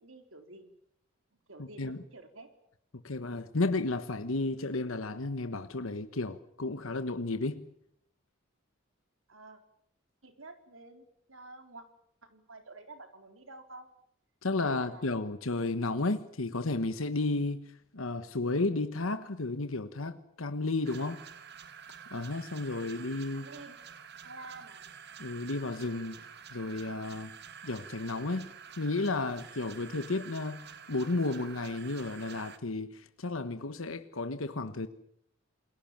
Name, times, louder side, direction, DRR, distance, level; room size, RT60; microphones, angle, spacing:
voice 1, 0.0-0.7 1.5-2.5 9.3-9.6 10.2-11.8 12.3-13.9 14.5-15.3 22.8-23.1 23.3-23.8 24.2-24.9, right 2 dB, 80° right, 4.0 m, -50 dB
voice 2, 1.6-2.0 3.0-7.6 14.4-21.2 22.1-23.5 25.2-26.2 26.5-27.3 27.6-28.5 28.8-34.9, left 2 dB, 85° left, 1.2 m, -33 dB
sound 1, 20.8-32.6, right 7 dB, 55° right, 1.7 m, -49 dB
29.0 x 21.5 x 7.4 m
head